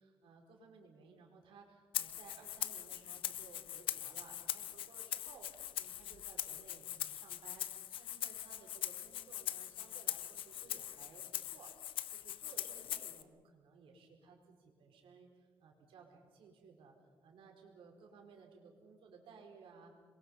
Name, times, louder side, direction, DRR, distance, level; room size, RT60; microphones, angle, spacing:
voice 1, 0.0-16.9 17.2-19.9, right 5 dB, 80° right, 2 dB, 4.8 m, -59 dB
Rattle (instrument), 1.9-13.2, left 11 dB, 80° left, 0.9 m, -42 dB
27.5 x 22.5 x 5.6 m, 1.5 s
cardioid pair, 160°, 9 cm